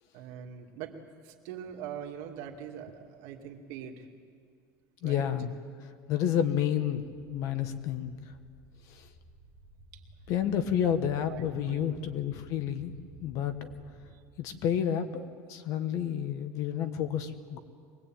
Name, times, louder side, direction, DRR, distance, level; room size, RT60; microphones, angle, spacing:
voice 1, 0.1-1.0 1.2-4.1 5.0-5.3 9.9-10.0 10.6-10.9 11.3-11.4 11.7-12.1 14.1-14.2, right 9 dB, 60° right, 2 dB, 2.5 m, -43 dB
voice 2, 5.0-5.5 5.8-8.3 8.9-9.1 10.3-13.7 14.4-17.6, left 9 dB, 45° left, 9 dB, 1.4 m, -30 dB
sound 1, 7.6-14.1, right 1 dB, 25° left, 5.9 m, -54 dB
23.0 x 20.5 x 9.0 m, 2.1 s
cardioid pair, 180°, 8 cm